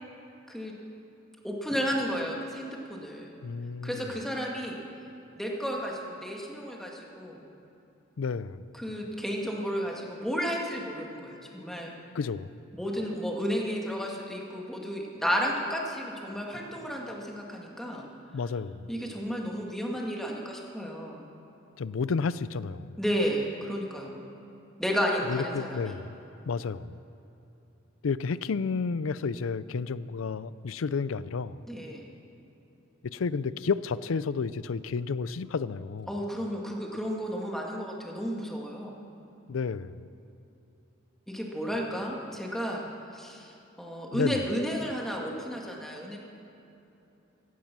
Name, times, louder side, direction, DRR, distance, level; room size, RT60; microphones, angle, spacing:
voice 1, 1.4-3.4 3.8-4.8 5.4-7.5 8.7-11.9 12.7-18.1 18.9-21.3 23.0-24.2 24.8-25.9 26.5-26.6 31.7-32.1 36.1-38.9 41.3-46.2, equal, ahead, -1 dB, 1.9 m, -32 dB
voice 2, 3.4-4.0 8.2-8.6 12.1-12.5 18.3-18.9 21.8-22.9 25.3-26.2 26.5-27.0 28.0-31.6 33.0-36.1 39.5-40.0 44.1-44.4, left 5 dB, 90° left, 17 dB, 0.5 m, -31 dB
16.0 x 14.5 x 6.1 m, 2.9 s
head